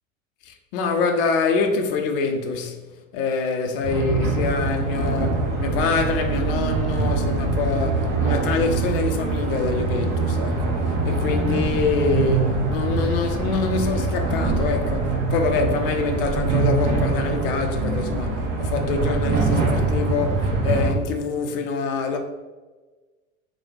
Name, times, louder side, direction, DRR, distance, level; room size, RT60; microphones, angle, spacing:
voice 1, 0.4-2.8 3.1-22.2, left 4 dB, 45° left, 0.4 m, -25 dB
sound 1, 3.8-20.9, right 3 dB, 40° right, 0.6 m, -23 dB
3.1 x 2.1 x 2.9 m
figure-of-eight pair, 75°, 41 cm